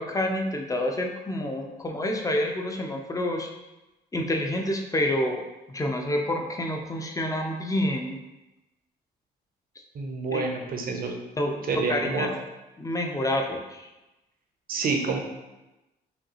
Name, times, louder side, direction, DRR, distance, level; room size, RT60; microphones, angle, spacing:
voice 1, 0.0-3.5 4.1-5.4 5.7-8.2 10.3-10.4 11.4-12.3 12.8-13.9, left 1 dB, 20° left, 2 dB, 0.7 m, -28 dB
voice 2, 9.9-11.1 11.7-12.3 14.7-15.2, right 4 dB, 50° right, 2 dB, 0.8 m, -28 dB
5.1 x 2.3 x 3.0 m, 1.0 s
supercardioid pair, 75°, 18 cm